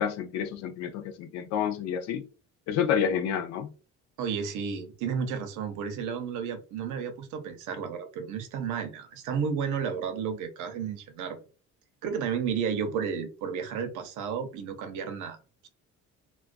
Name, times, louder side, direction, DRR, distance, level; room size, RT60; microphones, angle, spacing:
voice 1, 0.0-2.2 2.7-3.7, left 8 dB, 65° left, 0.5 m, -29 dB
voice 2, 4.2-11.4 12.0-15.4, right 6 dB, 85° right, 0.7 m, -32 dB
2.3 x 2.1 x 2.5 m
cardioid pair, 175°, 29 cm